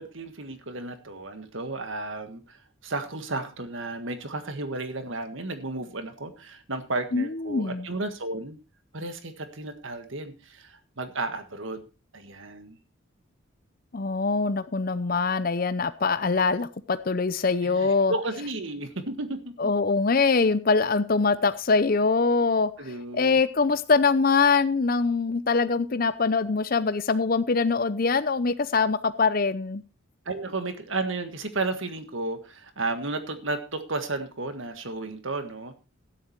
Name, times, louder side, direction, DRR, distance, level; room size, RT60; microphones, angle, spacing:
voice 1, 0.0-8.6 8.9-11.8 12.1-12.8 17.6-19.4 22.8-23.4 30.2-35.7, right 2 dB, 65° right, 1.7 m, -33 dB
voice 2, 7.1-7.9 13.9-18.1 19.6-29.8, left 4 dB, 40° left, 0.6 m, -23 dB
12.5 x 10.0 x 4.5 m
head